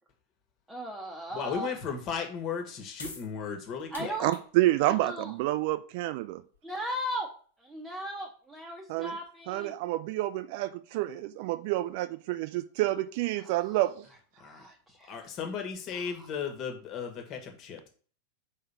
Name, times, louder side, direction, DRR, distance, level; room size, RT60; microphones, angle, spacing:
voice 1, 0.7-1.7 3.9-4.4 4.8-5.3 6.6-7.3 7.6-9.7 13.4-13.8 14.4-15.1 15.9-16.3, equal, 10° right, -1 dB, 1.1 m, -38 dB
voice 2, 1.3-4.2 14.4-14.7 15.1-17.9, left 6 dB, 35° left, 4 dB, 1.6 m, -35 dB
sound 1, 2.9-9.3, left 3 dB, 75° left, 1.6 m, -50 dB
voice 3, 4.2-6.4 8.9-9.2 9.5-14.0, right 16 dB, 50° right, 13 dB, 0.5 m, -29 dB
5.4 x 3.9 x 5.6 m, 0.43 s
figure-of-eight pair, 90°, 0 cm